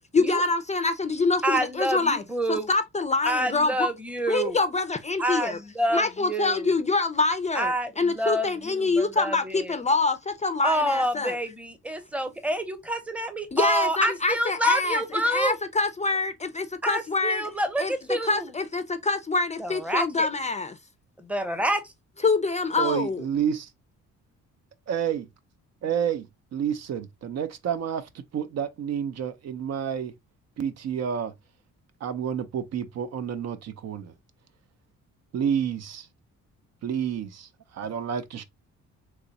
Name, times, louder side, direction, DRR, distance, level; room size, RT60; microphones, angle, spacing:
voice 1, 0.0-2.2 2.5-3.9 4.3-5.6 5.9-11.4 13.5-17.4 17.8-20.8 22.2-23.2, left 3 dB, 25° left, 0.5 m, -25 dB
voice 2, 1.4-2.7 3.3-4.6 5.2-6.7 7.5-9.7 10.6-15.6 16.8-18.5 19.6-20.3 21.2-21.9, right 1 dB, 5° right, 0.8 m, -28 dB
voice 3, 22.8-23.7 24.9-25.3 25.8-26.3 26.5-30.1 30.6-31.3 32.0-34.1 35.3-36.1 36.8-38.4, right 8 dB, 60° right, 0.6 m, -29 dB
3.0 x 2.2 x 4.0 m
cardioid pair, 90°, 30 cm